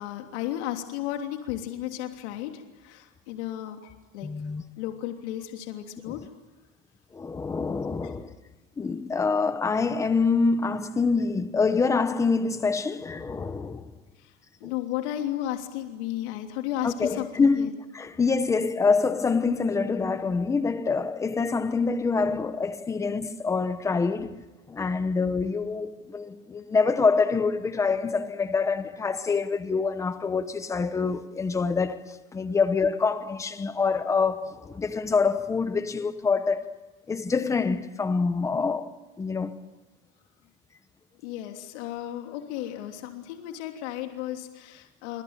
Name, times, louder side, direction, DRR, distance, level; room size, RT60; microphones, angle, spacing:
voice 1, 0.0-4.3 4.8-6.3 8.0-8.1 14.2-17.7 24.2-24.3 41.2-45.2, left 12 dB, 60° left, 3.2 m, -34 dB
voice 2, 4.2-4.6 6.1-6.2 7.1-8.3 8.8-13.9 14.6-14.7 16.8-17.7 17.9-24.3 24.7-36.7 37.1-38.9 39.2-39.6, left 4 dB, 10° left, 0.8 m, -26 dB
26.0 x 25.0 x 9.0 m
supercardioid pair, 175°, 39 cm